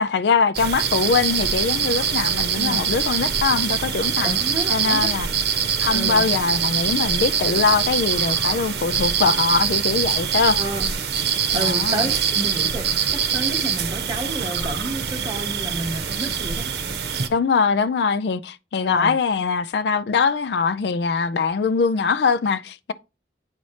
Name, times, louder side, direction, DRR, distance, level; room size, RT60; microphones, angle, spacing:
voice 1, 0.0-4.4 4.7-5.3 5.8-10.6 11.5-12.1 17.3-22.9, left 5 dB, 75° left, 0.4 m, -22 dB
sound 1, 0.5-17.3, right 7 dB, 70° right, 0.8 m, -23 dB
voice 2, 2.5-2.8 4.2-5.1 5.9-6.3 10.5-10.9 11.5-12.8 13.1-16.7 18.8-19.1, right 1 dB, 25° right, 1.5 m, -30 dB
8.8 x 4.1 x 3.2 m
head